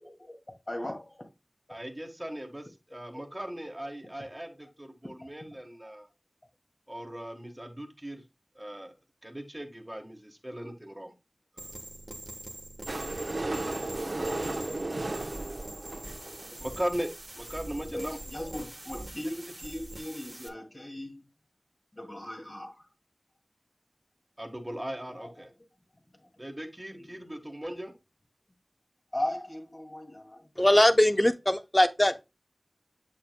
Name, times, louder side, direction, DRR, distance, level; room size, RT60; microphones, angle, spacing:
voice 1, 0.0-0.4 0.7-1.3 5.2-5.3 17.9-21.2 21.9-22.8 25.2-25.3 29.1-30.4, left 1 dB, 40° left, 2.2 m, -38 dB
voice 2, 1.7-6.1 6.9-8.2 8.5-8.9 9.2-11.1 11.6-11.7 16.6-17.1 17.3-18.2 18.5-18.7 24.4-25.5 26.4-27.9, right 1 dB, 20° right, 1.4 m, -38 dB
sound 1, 11.6-20.5, right 1 dB, 50° right, 1.2 m, -44 dB
sound 2, 12.9-16.7 17.4-17.5 17.7-17.8 18.0-18.1 18.4-18.5, right 2 dB, 75° right, 0.9 m, -34 dB
voice 3, 30.6-32.2, left 1 dB, 20° left, 0.7 m, -21 dB
7.7 x 6.3 x 2.2 m
wide cardioid pair, 40°, 0 cm